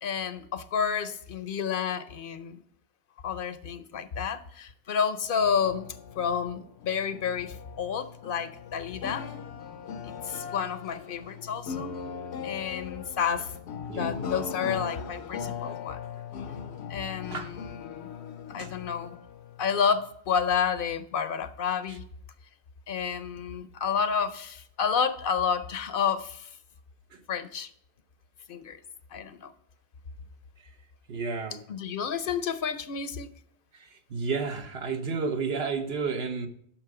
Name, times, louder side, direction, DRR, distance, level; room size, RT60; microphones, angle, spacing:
voice 1, 0.0-2.6 3.2-5.9 6.2-9.2 10.3-11.9 12.4-13.5 13.9-16.0 16.9-18.1 18.5-19.2 19.6-22.0 22.9-26.5 27.3-27.7 28.5-28.8 29.1-29.5 31.7-33.3, left 7 dB, 60° left, 12 dB, 0.7 m, -30 dB
sound 1, 5.4-20.1, left 7 dB, 90° left, 1.0 m, -39 dB
voice 2, 31.1-31.6 33.7-36.5, right 5 dB, 70° right, 7 dB, 1.2 m, -32 dB
9.0 x 6.2 x 4.8 m, 0.67 s
omnidirectional pair, 1.1 m